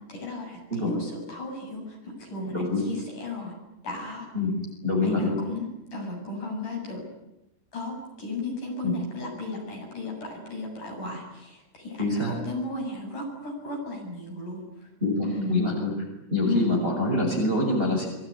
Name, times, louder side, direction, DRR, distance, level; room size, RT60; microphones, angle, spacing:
voice 1, 0.1-3.5 3.8-4.3 5.0-7.0 7.7-14.6 15.2-15.6 16.4-16.7, left 2 dB, 40° left, 1 dB, 9.1 m, -34 dB
voice 2, 2.5-2.8 4.3-4.5 4.8-5.4 8.8-8.9 12.0-12.3 15.0-15.9 16.3-18.1, left 2 dB, 10° right, 1 dB, 6.2 m, -25 dB
26.5 x 22.0 x 9.9 m, 0.91 s
omnidirectional pair, 5.7 m